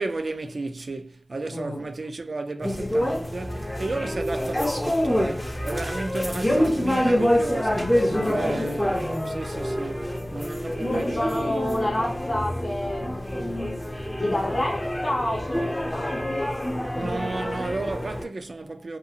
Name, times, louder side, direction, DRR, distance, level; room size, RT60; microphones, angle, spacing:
voice 1, 0.0-11.6 17.0-19.0, right 3 dB, 70° right, 0.4 m, -33 dB
voice 2, 1.5-1.9 8.1-8.8 10.9-16.5, left 1 dB, 65° left, 0.6 m, -30 dB
sound 1, 2.6-18.2, equal, 15° left, 0.6 m, -27 dB
2.6 x 2.3 x 2.7 m
wide cardioid pair, 55°, 0 cm